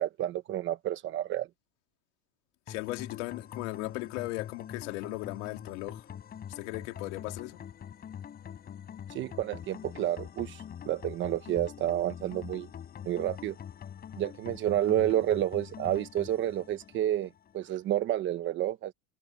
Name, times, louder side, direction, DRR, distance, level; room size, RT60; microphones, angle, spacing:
voice 1, 0.0-1.5 9.1-12.7 13.0-13.6 14.2-18.9, right 12 dB, 30° right, 1.0 m, -30 dB
voice 2, 2.7-6.1 6.5-7.6, left 21 dB, 60° left, 2.9 m, -37 dB
sound 1, 2.7-17.7, left 9 dB, 20° left, 5.7 m, -44 dB
supercardioid pair, 170°, 41 cm